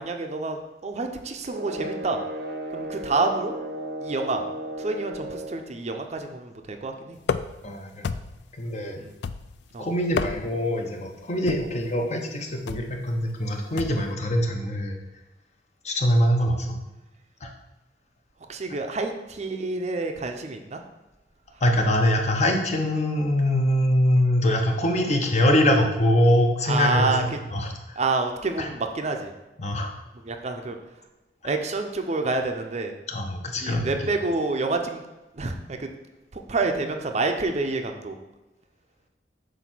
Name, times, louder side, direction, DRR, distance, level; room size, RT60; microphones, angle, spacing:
voice 1, 0.0-2.2 2.7-3.6 4.0-4.4 4.8-7.2 9.0-9.1 9.7-9.9 18.5-20.8 26.7-27.4 28.0-29.3 30.2-30.8 31.4-32.9 33.6-35.0 35.3-35.9 36.3-38.2, right 3 dB, 40° right, 5 dB, 0.5 m, -28 dB
sound 1, 1.5-5.7, right 1 dB, 75° right, 0.8 m, -35 dB
sound 2, 7.2-7.7 8.0-8.5 9.2-9.7 10.0-10.7 11.5-11.8 12.7-12.9 13.8-14.1, left 6 dB, 70° left, 0.3 m, -30 dB
voice 2, 7.6-8.1 8.6-9.0 9.8-15.0 15.8-16.8 17.4-17.5 21.6-28.0 28.6-28.7 29.6-29.9 33.1-33.9, left 1 dB, 40° left, 3 dB, 0.8 m, -23 dB
7.9 x 2.7 x 5.9 m, 1.0 s
head